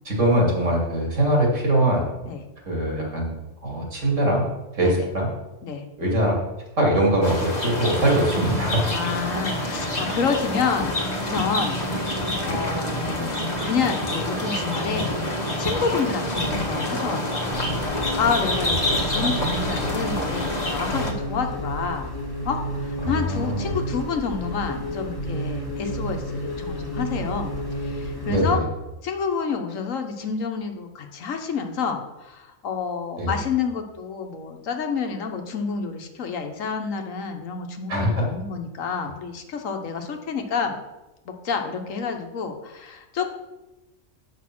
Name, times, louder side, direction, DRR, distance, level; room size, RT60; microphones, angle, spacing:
voice 1, 0.0-2.0 2.7-3.3 3.6-4.5 4.7-5.3 6.0-6.4 6.8-8.9 23.0-23.7 28.3-28.6 33.2-33.3 37.9-38.2, right 1 dB, 70° right, -2 dB, 2.9 m, -22 dB
sound 1, 7.2-21.1, left 1 dB, 35° left, 1.3 m, -27 dB
voice 2, 8.9-11.8 12.4-17.6 17.9-22.1 22.4-27.5 27.8-28.6 29.0-40.8 41.2-43.3, left 5 dB, 85° left, 5 dB, 1.4 m, -29 dB
sound 2, 17.5-28.5, equal, 15° left, 1.4 m, -31 dB
8.4 x 5.4 x 6.0 m, 1.0 s
omnidirectional pair, 1.3 m